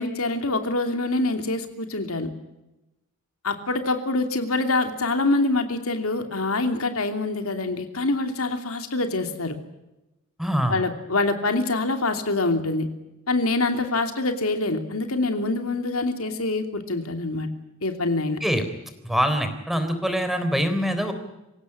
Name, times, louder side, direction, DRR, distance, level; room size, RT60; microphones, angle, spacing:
voice 1, 0.0-2.3 3.4-9.6 10.7-12.9 13.3-17.5 17.8-18.4, left 2 dB, 85° left, 6 dB, 2.9 m, -25 dB
voice 2, 10.4-10.8 18.4-18.6 19.0-21.1, equal, ahead, 8 dB, 3.7 m, -24 dB
26.0 x 17.0 x 9.9 m, 0.97 s
head